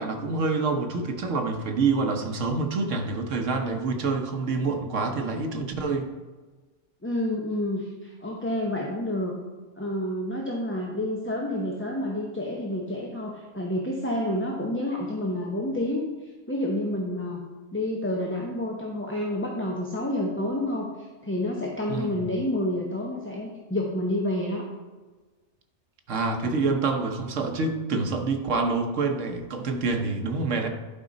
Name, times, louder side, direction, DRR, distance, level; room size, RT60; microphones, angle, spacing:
voice 1, 0.0-6.1 21.9-22.1 26.1-30.7, right 3 dB, 85° right, 4 dB, 1.3 m, -27 dB
voice 2, 7.0-9.4 9.8-16.1 16.5-17.4 17.7-20.9 21.2-24.6, left 1 dB, 10° left, -2 dB, 0.7 m, -29 dB
11.0 x 5.1 x 3.9 m, 1.3 s
omnidirectional pair, 1.3 m